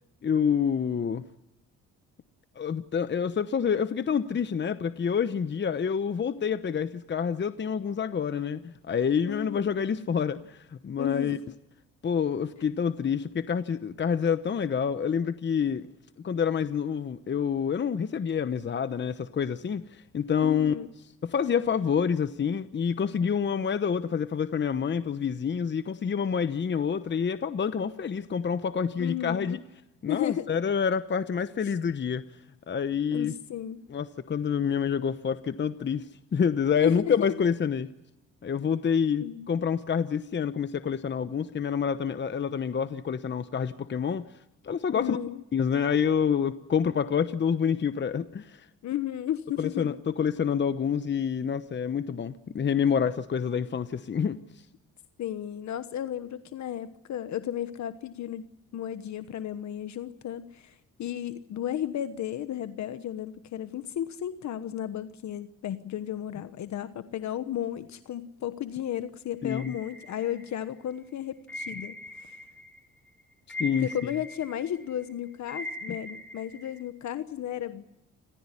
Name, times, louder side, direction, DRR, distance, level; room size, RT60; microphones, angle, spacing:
voice 1, 0.2-1.2 2.6-11.4 12.0-15.9 16.2-20.7 21.2-29.6 30.0-32.2 32.7-33.3 33.9-36.1 36.3-37.9 38.4-44.3 44.6-45.2 45.5-48.6 49.6-54.4 69.4-69.7 73.6-73.9 75.9-76.0, left 7 dB, 35° left, 1.0 m, -27 dB
voice 2, 9.2-9.7 11.0-11.4 20.4-20.9 29.0-29.6 30.1-30.5 31.6-31.7 33.1-33.8 36.7-37.3 39.2-39.5 44.9-45.4 48.8-50.0 55.2-72.4 73.8-77.8, left 11 dB, 65° left, 1.2 m, -34 dB
sound 1, 69.5-70.8 71.5-72.8 73.1-76.8, left 1 dB, 5° left, 4.1 m, -41 dB
29.0 x 15.0 x 9.9 m
cardioid pair, 90°, 30 cm